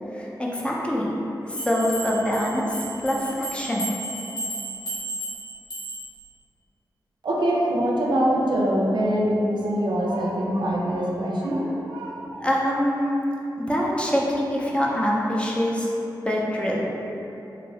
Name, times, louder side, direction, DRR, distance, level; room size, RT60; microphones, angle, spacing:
voice 1, 0.1-1.1 1.5-3.9 12.4-13.2 13.6-15.9 16.2-16.8, equal, 15° left, -4 dB, 0.4 m, -24 dB
sound 1, 1.6-6.2, right 2 dB, 65° left, 0.8 m, -34 dB
voice 2, 7.2-12.5, equal, 85° right, -3 dB, 0.4 m, -24 dB
2.7 x 2.6 x 3.1 m, 3.0 s
wide cardioid pair, 85°, 8 cm